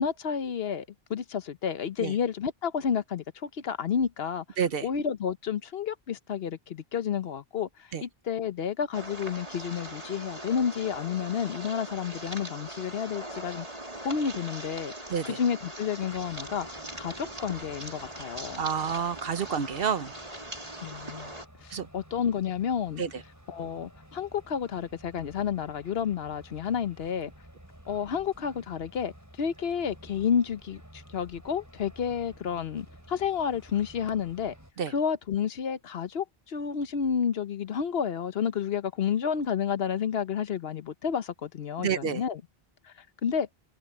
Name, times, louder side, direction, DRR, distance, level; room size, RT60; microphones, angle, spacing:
voice 1, 0.0-4.4 4.8-7.7 8.0-13.7 14.0-14.9 15.2-16.7 16.9-18.6 20.8-21.3 21.6-23.0 23.5-27.3 27.9-29.1 29.4-34.5 34.9-42.4 43.2-43.5, left 7 dB, 75° left, 1.1 m, -30 dB
sound 1, 8.9-21.5, right 1 dB, 35° right, 3.5 m, -41 dB
sound 2, 16.1-34.7, equal, 15° right, 5.6 m, -52 dB
voice 2, 18.6-20.1 21.7-21.9 23.0-23.1 34.8-34.9 41.8-42.2, right 7 dB, 65° right, 1.0 m, -29 dB
omnidirectional pair, 1.1 m